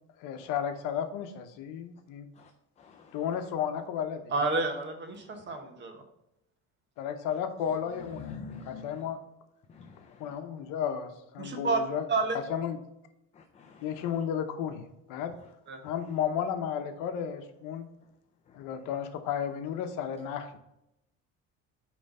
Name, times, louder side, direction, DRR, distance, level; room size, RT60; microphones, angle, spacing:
voice 1, 0.2-2.3 3.1-4.4 7.0-9.2 10.2-12.0 12.3-12.8 13.8-15.3 15.8-17.9 18.5-20.6, left 8 dB, 85° left, 7 dB, 0.9 m, -33 dB
voice 2, 2.8-3.2 5.2-5.4 8.1-9.0 9.7-10.4 13.3-14.0 18.5-18.6, left 5 dB, 20° left, 5 dB, 0.4 m, -47 dB
voice 3, 4.3-6.0 11.4-11.8 12.1-12.4 15.7-15.8, right 3 dB, 35° right, 5 dB, 1.1 m, -30 dB
8.9 x 3.3 x 5.4 m, 0.85 s
cardioid pair, 165°, 31 cm